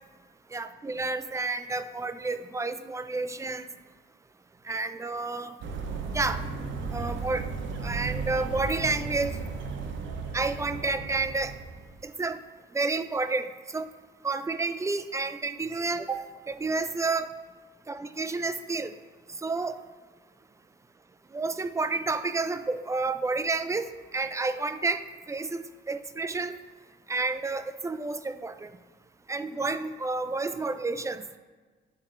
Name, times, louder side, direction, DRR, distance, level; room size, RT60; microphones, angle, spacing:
voice 1, 0.5-3.7 4.6-5.6 6.1-6.4 6.9-7.5 7.8-9.4 10.3-11.5 12.0-12.4 12.7-13.9 14.2-17.3 17.9-18.9 19.4-19.8 21.3-26.5 27.1-28.7 29.3-31.4, right 3 dB, 15° right, 11 dB, 0.4 m, -30 dB
sound 1, 5.6-12.0, right 4 dB, 70° right, 0.8 m, -35 dB
10.5 x 4.2 x 2.5 m, 1.4 s
cardioid pair, 90°, 20 cm